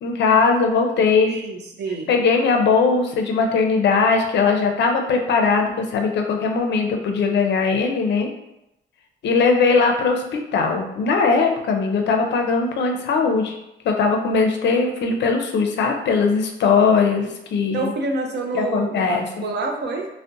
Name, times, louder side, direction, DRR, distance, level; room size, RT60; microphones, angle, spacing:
voice 1, 0.0-1.3 2.1-8.3 9.2-13.5 13.8-17.9 18.5-19.4, left 4 dB, 60° left, 3 dB, 0.5 m, -20 dB
voice 2, 1.3-2.1 17.7-20.1, right 3 dB, 60° right, 2 dB, 0.5 m, -27 dB
2.5 x 2.0 x 2.5 m, 0.86 s
cardioid pair, 90°, 20 cm